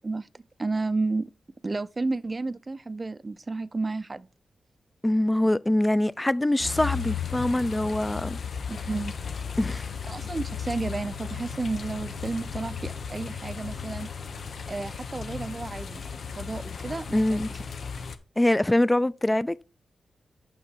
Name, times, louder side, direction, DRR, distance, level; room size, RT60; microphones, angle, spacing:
voice 1, 0.0-1.3 1.6-4.3 8.7-9.1 10.1-14.1 14.6-16.0 16.4-17.6, right 3 dB, 35° right, 0.5 m, -32 dB
voice 2, 5.0-8.4 9.6-9.9 17.1-17.5 18.4-19.6, left 1 dB, 15° left, 0.5 m, -24 dB
sound 1, 6.6-18.2, left 6 dB, 70° left, 1.0 m, -35 dB
8.2 x 5.9 x 4.6 m
cardioid pair, 50°, 0 cm